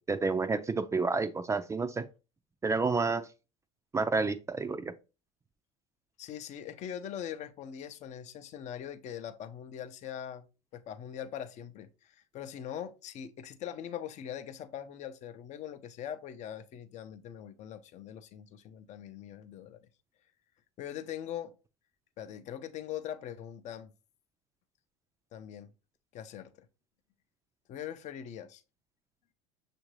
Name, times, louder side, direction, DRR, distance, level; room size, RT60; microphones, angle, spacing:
voice 1, 0.0-2.0 2.6-3.2 3.9-4.9, right 4 dB, 20° right, 0.4 m, -29 dB
voice 2, 6.2-10.4 10.7-19.8 20.8-21.5 22.2-23.9 25.3-25.7 26.1-26.7 27.7-28.6, left 9 dB, 45° left, 0.6 m, -42 dB
6.4 x 2.5 x 3.1 m
hypercardioid pair, 85°, 16 cm